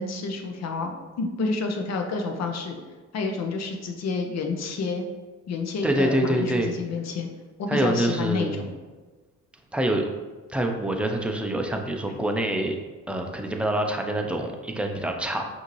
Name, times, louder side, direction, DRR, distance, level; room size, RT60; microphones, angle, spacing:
voice 1, 0.0-2.8 3.1-5.1 5.5-7.3 7.6-8.7, left 4 dB, 60° left, 4 dB, 0.7 m, -29 dB
voice 2, 5.8-6.7 7.7-8.6 9.7-10.1 10.5-12.8 13.1-15.5, right 1 dB, 5° right, 2 dB, 0.5 m, -25 dB
5.6 x 2.7 x 3.1 m, 1.3 s
cardioid pair, 90°, 30 cm